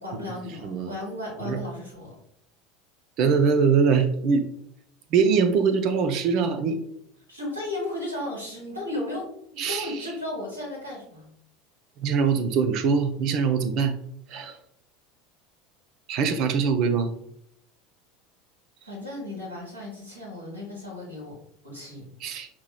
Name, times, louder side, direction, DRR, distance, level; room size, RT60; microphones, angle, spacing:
voice 1, 0.0-2.1 7.3-9.3 9.5-11.3 18.8-21.3 21.6-22.0, left 1 dB, 85° right, -3 dB, 1.7 m, -35 dB
voice 2, 3.2-4.5 5.1-6.8 9.6-10.1 12.0-13.9 14.3-14.6 16.1-17.2 22.2-22.5, right 5 dB, 50° right, 8 dB, 0.5 m, -23 dB
5.9 x 3.0 x 2.3 m, 0.72 s
figure-of-eight pair, 75°, 0 cm